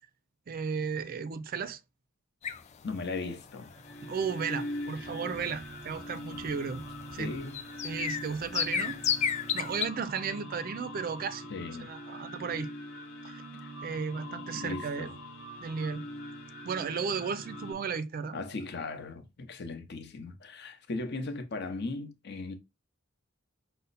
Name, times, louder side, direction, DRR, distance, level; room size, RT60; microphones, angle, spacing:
voice 1, 0.5-1.8 4.0-6.8 7.1-7.3 7.8-9.0 9.5-12.7 13.2-13.4 13.8-15.1 15.6-16.0 16.6-18.4, right 5 dB, 45° right, 0.4 m, -34 dB
sound 1, 2.4-9.9, left 8 dB, 35° left, 0.4 m, -35 dB
voice 2, 2.8-3.7 7.2-7.6 11.5-11.9 13.6-13.7 14.5-15.1 18.3-22.5, left 3 dB, 55° left, 0.8 m, -37 dB
sound 2, 3.5-17.7, equal, 80° left, 1.2 m, -43 dB
5.5 x 2.1 x 3.9 m
head